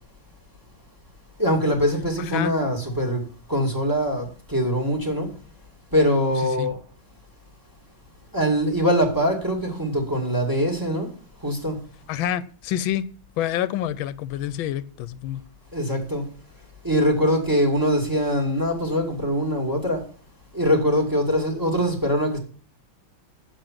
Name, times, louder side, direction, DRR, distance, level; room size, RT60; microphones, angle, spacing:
voice 1, 1.4-3.2 3.5-5.3 5.9-6.8 8.3-11.1 11.4-11.8 15.7-16.3 16.8-20.0 20.5-22.4, equal, 10° right, 2.3 m, -23 dB
voice 2, 12.1-13.0 13.4-15.4, left 11 dB, 80° left, 1.4 m, -27 dB
7.6 x 7.3 x 7.4 m
omnidirectional pair, 2.2 m